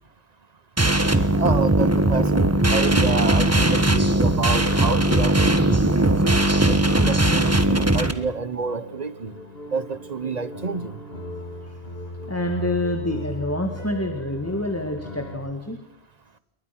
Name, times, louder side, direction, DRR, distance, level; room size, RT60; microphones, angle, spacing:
sound 1, 0.8-8.1, right 1 dB, 15° right, 1.5 m, -19 dB
voice 1, 1.3-6.3 6.7-9.3 9.7-11.0, right 4 dB, 40° right, 14 dB, 1.2 m, -29 dB
sound 2, 4.7-15.4, left 1 dB, 65° left, 3.8 m, -38 dB
voice 2, 12.3-15.8, left 1 dB, 15° left, 5 dB, 2.0 m, -27 dB
29.0 x 22.5 x 6.1 m, 0.79 s
omnidirectional pair, 1.1 m